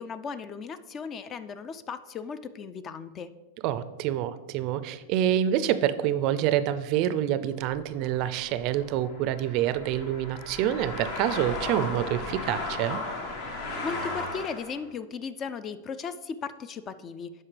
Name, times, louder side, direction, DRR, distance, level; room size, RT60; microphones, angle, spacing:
voice 1, 0.0-3.3 13.8-17.3, left 5 dB, 30° left, 14 dB, 0.4 m, -36 dB
voice 2, 3.6-13.0, right 11 dB, 50° right, 13 dB, 0.4 m, -27 dB
sound 1, 7.7-14.8, left 2 dB, 55° left, 1.4 m, -36 dB
11.5 x 4.5 x 3.3 m, 1.2 s
hypercardioid pair, 120°, 0 cm